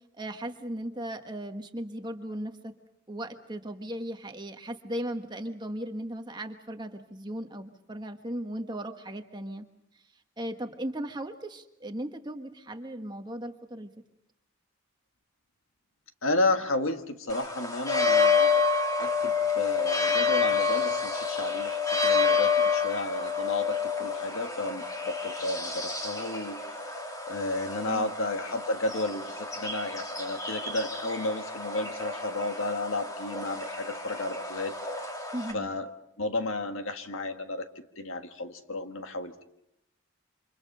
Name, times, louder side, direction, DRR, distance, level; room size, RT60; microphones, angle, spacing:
voice 1, 0.2-2.7 3.1-9.7 10.4-13.9 27.9-28.1 35.3-35.7, right 1 dB, 20° right, 6 dB, 1.4 m, -37 dB
voice 2, 16.2-26.9 27.3-34.8 35.5-35.9 36.2-37.7 38.0-39.3, left 2 dB, 75° left, 7 dB, 1.7 m, -32 dB
sound 1, 17.3-35.5, left 5 dB, 15° left, 2.1 m, -29 dB
29.0 x 26.0 x 5.5 m, 0.81 s
head